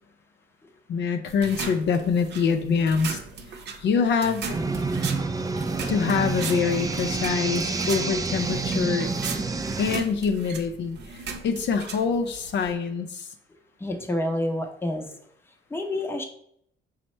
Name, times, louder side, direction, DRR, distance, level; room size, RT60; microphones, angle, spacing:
voice 1, 0.9-3.2 3.8-4.5 5.9-9.1 9.8-13.3, left 5 dB, 65° left, 6 dB, 0.5 m, -25 dB
sound 1, 1.3-12.7, right 4 dB, 60° right, 0.6 m, -38 dB
sound 2, 4.5-10.0, right 4 dB, 20° right, 0.3 m, -28 dB
voice 2, 13.8-15.1 15.7-16.2, left 1 dB, 10° left, 3 dB, 0.7 m, -28 dB
5.2 x 2.1 x 4.3 m, 0.70 s
cardioid pair, 90°, 20 cm